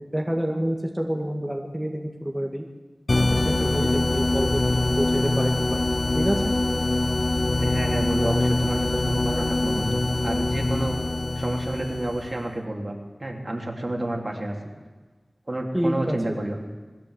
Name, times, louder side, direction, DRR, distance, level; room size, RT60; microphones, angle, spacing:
voice 1, 0.0-2.6 3.4-5.9 6.2-6.5 15.7-16.2, equal, 10° right, 0 dB, 2.1 m, -28 dB
sound 1, 3.1-12.5, left 2 dB, 60° left, 0.8 m, -24 dB
voice 2, 7.6-11.0 11.3-14.5 15.5-16.6, right 1 dB, 40° right, 1 dB, 3.4 m, -30 dB
21.5 x 15.5 x 8.2 m, 1.3 s
wide cardioid pair, 55°, 0 cm